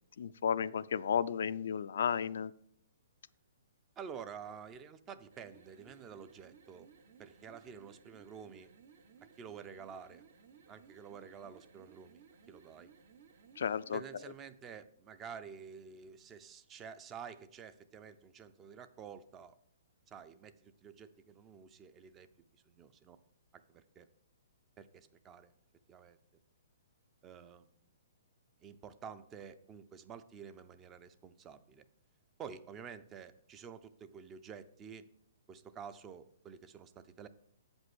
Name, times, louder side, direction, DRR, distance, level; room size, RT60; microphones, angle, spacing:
voice 1, 0.2-2.5 13.6-14.0, left 7 dB, 70° left, 15 dB, 0.3 m, -33 dB
voice 2, 4.0-6.9 7.2-8.7 9.4-10.2 10.7-12.9 13.9-19.6 20.1-22.3 22.7-23.2 23.5-24.1 24.8-25.5 25.9-26.2 27.2-27.7 28.6-31.8 32.4-35.1 35.5-37.3, right 7 dB, 20° right, 13 dB, 0.4 m, -50 dB
sound 1, 5.2-14.4, right 6 dB, 55° right, 0.8 m, -61 dB
7.7 x 5.3 x 6.1 m, 0.72 s
hypercardioid pair, 155°, 0 cm